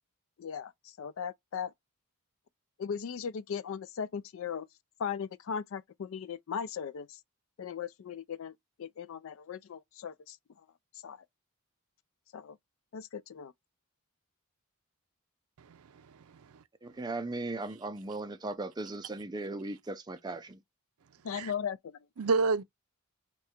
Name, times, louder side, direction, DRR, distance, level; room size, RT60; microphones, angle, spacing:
voice 1, 0.4-0.7 1.0-1.7 2.8-4.7 5.0-7.2 7.6-8.5 8.8-10.4 11.0-11.2 12.3-12.6 12.9-13.5 21.2-22.0, left 7 dB, 60° left, 0.3 m, -38 dB
voice 2, 15.6-16.6 21.3-21.5 22.2-22.6, right 4 dB, 80° right, 0.5 m, -31 dB
voice 3, 16.8-20.6, right 2 dB, 20° right, 0.4 m, -37 dB
3.7 x 2.3 x 4.2 m
head